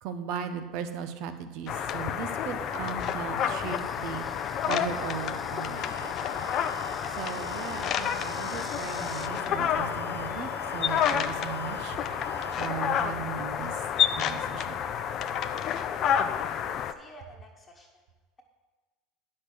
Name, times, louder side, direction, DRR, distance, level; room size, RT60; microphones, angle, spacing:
voice 1, 0.0-4.3 4.6-6.5 7.1-12.0 12.6-13.8 14.2-14.8, right 8 dB, 60° right, 7 dB, 0.9 m, -37 dB
sound 1, 1.7-16.9, left 8 dB, 45° left, 0.5 m, -30 dB
Insect, 3.3-9.3, left 1 dB, 5° left, 0.8 m, -49 dB
sound 2, 5.8-12.6, right 3 dB, 90° right, 0.6 m, -44 dB
voice 2, 16.2-18.0, left 1 dB, 25° left, 0 dB, 1.3 m, -51 dB
9.6 x 6.4 x 6.1 m, 1.3 s
hypercardioid pair, 75°, 0 cm